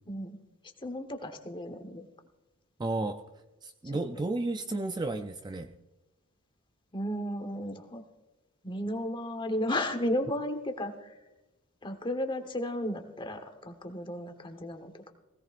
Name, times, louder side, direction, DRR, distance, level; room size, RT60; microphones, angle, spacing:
voice 1, 0.1-0.4 0.8-2.1 3.8-4.0 6.9-8.0 8.6-11.1 11.8-15.1, left 1 dB, 20° left, 7 dB, 1.1 m, -34 dB
voice 2, 2.8-3.2 3.6-5.7, right 2 dB, 20° right, 7 dB, 0.4 m, -32 dB
20.0 x 17.0 x 2.5 m, 1.1 s
head